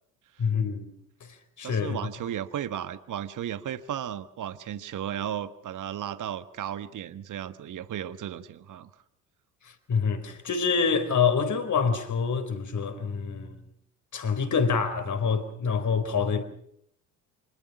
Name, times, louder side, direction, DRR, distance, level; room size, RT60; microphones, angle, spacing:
voice 1, 0.4-0.9 1.6-2.0 9.9-13.6 14.1-16.4, left 5 dB, 40° left, 4.4 m, -26 dB
voice 2, 1.6-8.9, right 10 dB, 45° right, 1.5 m, -35 dB
25.5 x 21.0 x 6.2 m
hypercardioid pair, 60°, 44 cm